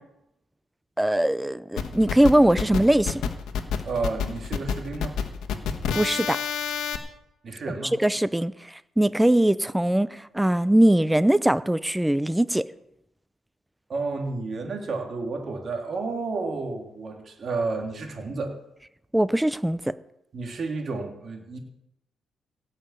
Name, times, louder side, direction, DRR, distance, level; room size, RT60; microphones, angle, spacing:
voice 1, 1.0-3.2 5.9-6.4 8.0-12.7 19.1-19.9, right 1 dB, 5° right, 17 dB, 0.4 m, -21 dB
sound 1, 1.8-7.0, left 7 dB, 85° left, 1.2 m, -28 dB
voice 2, 3.8-5.2 7.4-7.9 13.9-18.5 20.3-21.6, right 3 dB, 40° right, 3 dB, 2.3 m, -31 dB
16.5 x 5.7 x 8.3 m, 0.83 s
cardioid pair, 135°, 0 cm